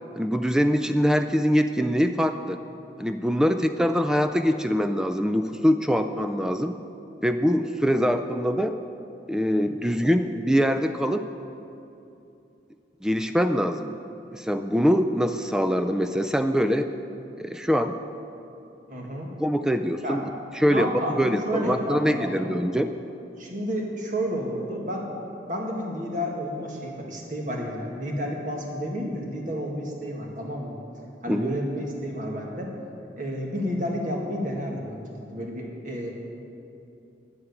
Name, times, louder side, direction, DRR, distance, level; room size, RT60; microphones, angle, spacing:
voice 1, 0.2-2.6 3.0-6.8 7.2-8.8 9.3-11.3 13.0-14.0 14.3-16.9 17.4-18.0 19.4-20.3 20.5-20.9 21.2-22.9 31.3-31.5, equal, 5° right, 8 dB, 0.3 m, -23 dB
voice 2, 18.9-19.3 20.0-20.2 20.7-22.5 23.4-25.2 25.5-30.8 31.2-32.7 33.2-36.1, equal, 45° right, -1 dB, 1.8 m, -31 dB
9.8 x 7.9 x 8.2 m, 2.8 s
head